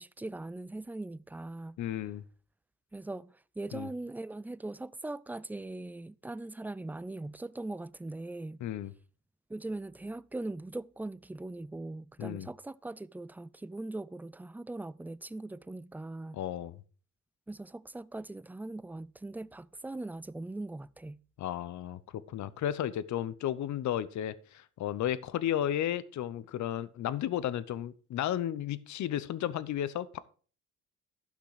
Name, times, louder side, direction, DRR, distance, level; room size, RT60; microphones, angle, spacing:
voice 1, 0.0-1.8 2.9-8.6 9.5-16.4 17.5-21.2, right 2 dB, 5° right, 0.4 m, -40 dB
voice 2, 1.8-2.2 3.7-3.9 8.6-8.9 12.2-12.5 16.3-16.8 21.4-22.0 22.3-30.2, left 11 dB, 70° left, 0.8 m, -33 dB
12.0 x 6.0 x 4.9 m
cardioid pair, 90°, 30 cm